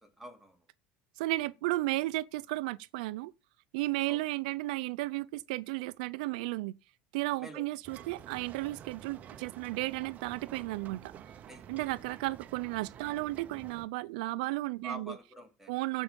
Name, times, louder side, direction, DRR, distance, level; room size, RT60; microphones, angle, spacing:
voice 1, 0.0-0.6 4.1-4.2 7.4-7.6 11.5-11.7 14.8-15.7, right 2 dB, 5° right, 2.6 m, -45 dB
voice 2, 1.2-3.3 3.7-6.7 7.1-11.0 11.7-15.1 15.7-16.0, right 19 dB, 85° right, 0.5 m, -34 dB
sound 1, 7.8-13.9, right 9 dB, 40° right, 0.8 m, -50 dB
15.0 x 5.6 x 5.2 m
cardioid pair, 135°, 4 cm